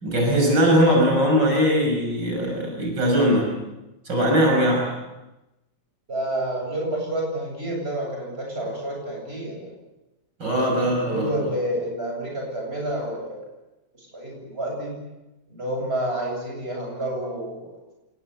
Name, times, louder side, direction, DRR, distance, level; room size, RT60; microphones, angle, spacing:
voice 1, 0.0-3.5 4.0-4.9 10.4-11.3, equal, 75° right, 1 dB, 6.2 m, -20 dB
voice 2, 6.1-9.7 11.1-13.4 14.0-15.0 15.5-17.8, right 1 dB, 30° right, 0 dB, 8.4 m, -29 dB
27.5 x 19.5 x 8.3 m, 0.99 s
omnidirectional pair, 2.0 m